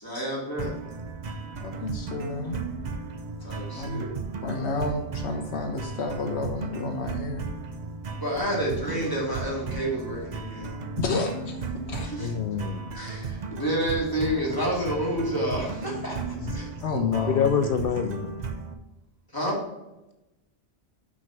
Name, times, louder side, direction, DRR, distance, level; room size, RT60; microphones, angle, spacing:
voice 1, 0.0-0.7 3.4-4.1 8.2-10.8 12.0-12.3 12.9-16.2 16.5-16.7 19.3-19.6, equal, 20° left, -5 dB, 2.6 m, -29 dB
sound 1, 0.6-18.7, right 4 dB, 45° right, 0.8 m, -35 dB
voice 2, 1.6-2.6 3.7-4.0 4.4-7.5 11.0-11.6 11.9-12.1 16.8-17.5, left 4 dB, 85° left, 2 dB, 1.1 m, -30 dB
voice 3, 12.2-12.8 16.4-16.5 17.3-18.3, left 7 dB, 65° left, 8 dB, 0.7 m, -26 dB
6.2 x 5.4 x 5.8 m, 0.97 s
omnidirectional pair, 1.1 m